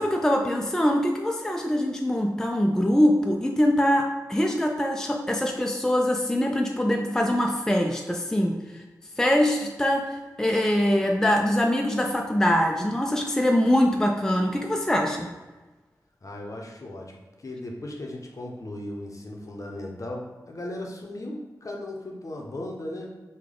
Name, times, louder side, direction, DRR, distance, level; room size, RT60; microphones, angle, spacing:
voice 1, 0.0-8.6 9.2-15.3, left 1 dB, 10° left, 1 dB, 0.3 m, -23 dB
voice 2, 16.2-23.1, left 1 dB, 50° left, 0 dB, 0.7 m, -37 dB
3.3 x 2.2 x 3.7 m, 1.2 s
cardioid pair, 50°, 7 cm